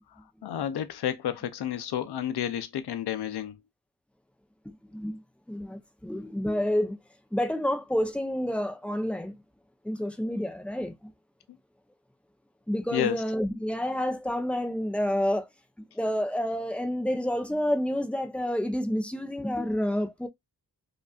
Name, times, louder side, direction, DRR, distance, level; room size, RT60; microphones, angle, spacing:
voice 1, 0.4-3.6 12.9-13.2, left 10 dB, 85° left, 0.6 m, -30 dB
voice 2, 4.7-5.2 5.5-7.0 7.3-9.3 9.8-11.1 12.7-15.5 15.9-20.3, equal, 5° left, 0.5 m, -29 dB
5.1 x 2.4 x 2.2 m
wide cardioid pair, 150°, 38 cm